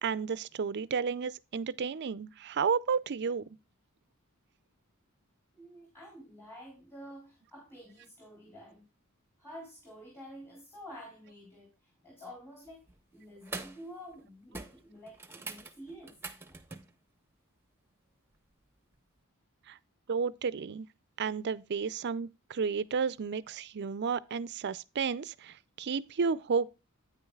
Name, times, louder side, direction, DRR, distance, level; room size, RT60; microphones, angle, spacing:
voice 1, 0.0-3.6 19.7-19.8 20.1-20.9 21.2-26.7, right 5 dB, 55° right, 0.4 m, -32 dB
voice 2, 5.5-8.8 9.4-12.8 13.1-16.2, equal, 10° left, 3.5 m, -49 dB
sound 1, 12.7-13.0 13.4-13.9 14.1-14.3 14.5-16.9 18.9-19.0, right 3 dB, 10° right, 0.9 m, -44 dB
9.6 x 9.2 x 2.3 m
head